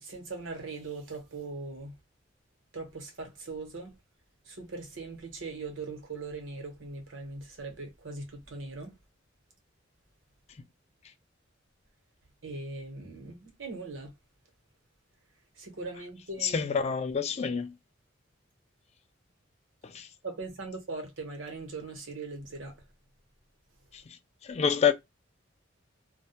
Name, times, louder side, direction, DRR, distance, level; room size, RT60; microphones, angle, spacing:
voice 1, 0.0-1.9 2.7-3.9 4.4-8.9 12.4-14.1 15.5-16.7 20.2-22.8, right 3 dB, 80° right, 0.9 m, -40 dB
voice 2, 16.4-17.7 19.8-20.1 24.4-24.9, left 6 dB, 35° left, 0.3 m, -27 dB
2.2 x 2.0 x 2.8 m
head